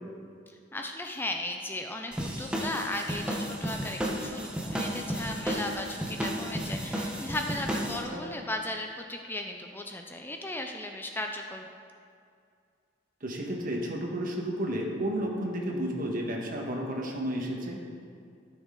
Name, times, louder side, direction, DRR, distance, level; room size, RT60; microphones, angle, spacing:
voice 1, 0.5-11.7, left 1 dB, 10° left, 3 dB, 0.4 m, -36 dB
sound 1, 2.1-8.0, equal, 5° right, 0.9 m, -33 dB
voice 2, 7.9-8.2 13.2-17.8, equal, 50° right, 0 dB, 1.4 m, -32 dB
13.5 x 6.3 x 3.8 m, 2.3 s
head